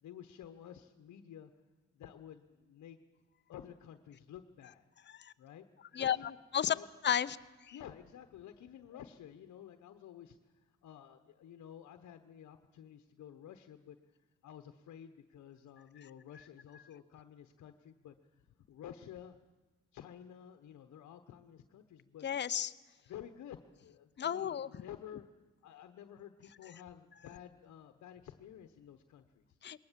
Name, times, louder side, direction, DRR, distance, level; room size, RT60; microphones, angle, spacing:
voice 1, 0.0-1.5 1.9-3.0 3.5-4.9 5.4-5.7 6.0-6.4 6.7-6.9 7.7-14.1 14.4-19.4 19.9-22.3 23.1-25.3 25.6-29.6, left 10 dB, 70° left, 8 dB, 1.1 m, -52 dB
voice 2, 7.0-7.4 7.7-7.8 22.2-22.7 24.2-24.7 29.6-29.8, left 9 dB, 35° left, 12 dB, 0.7 m, -32 dB
21.0 x 18.5 x 7.5 m, 1.2 s
cardioid pair, 90°, 30 cm